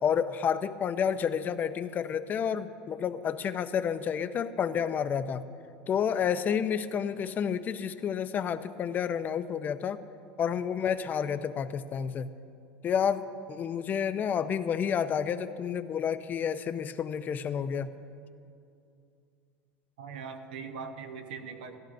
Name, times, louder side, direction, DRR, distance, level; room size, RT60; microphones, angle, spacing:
voice 1, 0.0-5.4 5.9-10.0 10.4-12.3 12.8-17.9, left 7 dB, 35° left, 12 dB, 0.5 m, -30 dB
voice 2, 20.0-21.8, right 5 dB, 85° right, 5 dB, 1.0 m, -41 dB
16.5 x 14.5 x 2.6 m, 2.5 s
supercardioid pair, 100°, 5 cm